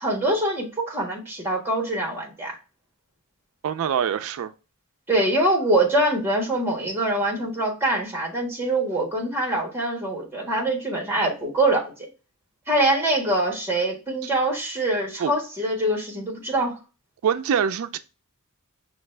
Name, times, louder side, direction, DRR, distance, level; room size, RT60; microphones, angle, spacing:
voice 1, 0.0-2.5 5.1-11.8 12.7-16.8, right 1 dB, 10° right, 1.4 m, -24 dB
voice 2, 3.6-4.5 15.2-15.3 17.2-18.0, right 8 dB, 65° right, 0.3 m, -24 dB
6.0 x 2.4 x 3.2 m
head